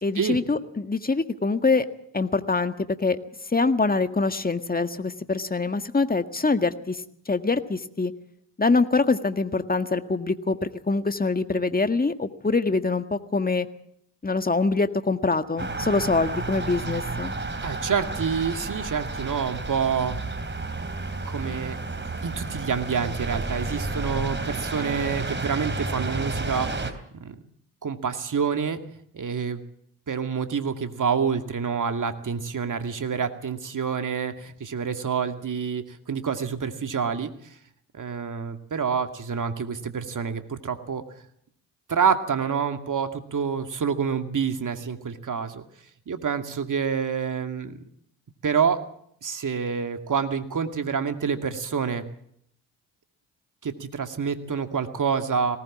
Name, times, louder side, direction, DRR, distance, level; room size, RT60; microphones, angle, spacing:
voice 1, 0.0-1.9 2.1-3.2 3.5-7.0 7.3-8.1 8.6-13.7 14.2-17.3, left 3 dB, 20° left, 8 dB, 1.8 m, -24 dB
sound 1, 15.6-26.9, right 3 dB, 25° right, 3.2 m, -31 dB
voice 2, 17.6-20.2 21.3-21.8 22.2-27.4 27.8-28.8 29.1-29.6 30.1-37.3 37.9-41.0 41.9-45.7 46.1-47.8 48.4-48.8 49.2-52.0 53.6-55.6, right 6 dB, 40° right, 7 dB, 2.4 m, -27 dB
19.5 x 18.5 x 7.4 m, 0.69 s
hypercardioid pair, 45°, 46 cm